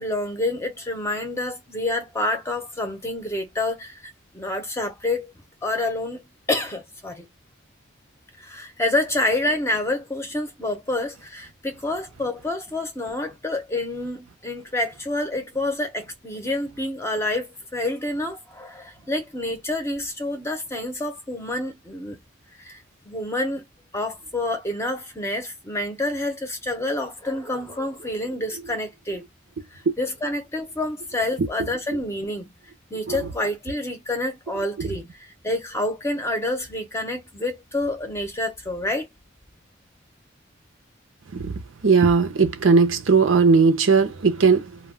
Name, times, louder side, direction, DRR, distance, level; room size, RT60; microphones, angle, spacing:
voice 1, 0.0-4.0 4.3-5.3 5.6-6.2 6.5-7.3 8.4-22.2 22.6-22.8 23.1-23.6 23.9-29.3 29.7-32.5 32.9-39.1, left 1 dB, 15° left, 0.6 m, -28 dB
voice 2, 41.8-44.8, right 5 dB, 90° right, 0.6 m, -18 dB
2.2 x 2.2 x 3.4 m
head